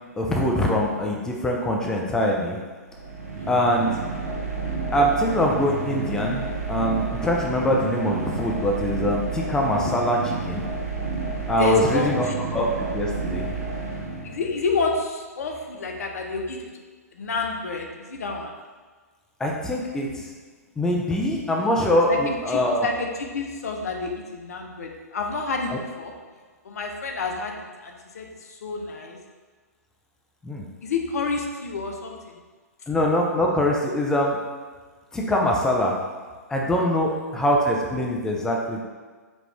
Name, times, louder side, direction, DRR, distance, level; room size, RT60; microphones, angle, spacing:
voice 1, 0.2-2.6 3.5-3.9 4.9-10.6 11.5-12.3 12.5-13.5 19.4-20.2 20.8-22.9 30.4-30.6 32.9-34.4 35.1-35.9 36.5-38.8, equal, 5° left, -1 dB, 0.5 m, -23 dB
sound 1, 2.9-14.7, right 4 dB, 65° right, 0.8 m, -30 dB
voice 2, 11.6-12.4 14.2-16.7 17.1-18.5 22.1-26.1 26.6-29.2 30.8-32.4, left 4 dB, 65° left, 2 dB, 0.6 m, -29 dB
5.0 x 2.4 x 3.4 m, 1.4 s
figure-of-eight pair, 120°, 9 cm